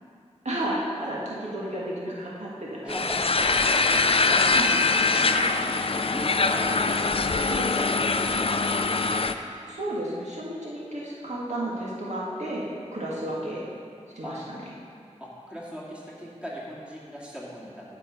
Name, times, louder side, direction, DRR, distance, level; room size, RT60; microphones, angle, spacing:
voice 1, 0.4-1.2 1.5-3.0 4.5-4.8 5.7-5.8 7.5-7.7 9.7-13.7 14.2-14.4, right 1 dB, 70° right, -6 dB, 1.9 m, -32 dB
voice 2, 2.8-4.4 5.1-7.4 7.7-9.2 13.1-13.3 14.2-14.4 15.2-17.8, equal, 10° right, -6 dB, 2.4 m, -40 dB
sound 1, 2.9-9.3, left 3 dB, 50° left, 0.4 m, -23 dB
11.0 x 5.9 x 5.3 m, 2.4 s
wide cardioid pair, 50°, 12 cm